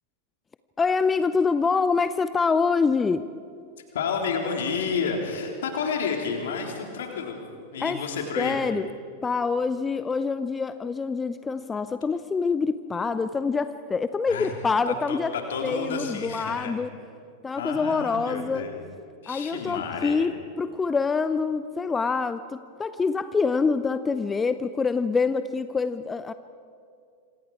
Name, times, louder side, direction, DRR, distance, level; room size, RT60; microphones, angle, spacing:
voice 1, 0.8-3.3 7.8-8.0 8.4-8.9 9.2-15.3 15.6-16.9 17.4-18.6 19.3-26.3, left 4 dB, 15° left, 13 dB, 0.6 m, -25 dB
voice 2, 3.9-7.4 7.7-8.6 14.3-14.5 15.1-16.8 17.6-18.7 19.2-20.2, left 5 dB, 60° left, 2 dB, 3.7 m, -30 dB
27.0 x 26.5 x 4.8 m, 2.4 s
figure-of-eight pair, 90°, 0 cm